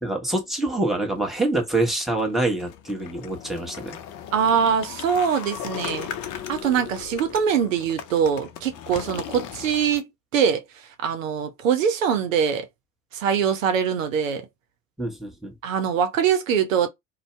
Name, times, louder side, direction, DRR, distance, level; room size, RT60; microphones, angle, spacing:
voice 1, 0.0-4.0 15.0-15.5, right 2 dB, ahead, 1.1 m, -26 dB
sound 1, 1.4-10.0, left 9 dB, 50° left, 0.7 m, -37 dB
voice 2, 4.3-6.1 6.5-10.1 10.3-10.6 11.0-12.7 13.1-14.5 15.6-16.9, right 7 dB, 85° right, 0.6 m, -23 dB
2.6 x 2.2 x 3.1 m
hypercardioid pair, 60°, 38 cm